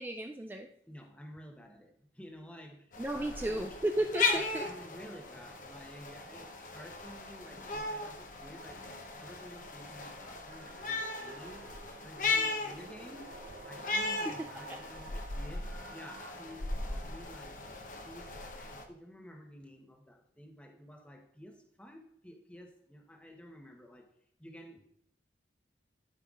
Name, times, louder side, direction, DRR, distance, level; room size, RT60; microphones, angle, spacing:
voice 1, 0.0-0.7 3.0-4.7, right 1 dB, 10° right, 4 dB, 0.3 m, -34 dB
voice 2, 0.9-3.8 4.3-8.8 9.2-11.7 12.0-13.3 13.6-17.6 18.0-24.1 24.4-24.9, equal, 5° left, 2 dB, 0.9 m, -51 dB
sound 1, 2.9-18.8, left 3 dB, 45° left, 0.8 m, -37 dB
sound 2, 10.5-16.3, right 4 dB, 60° right, 0.6 m, -52 dB
12.5 x 5.6 x 2.4 m, 0.70 s
head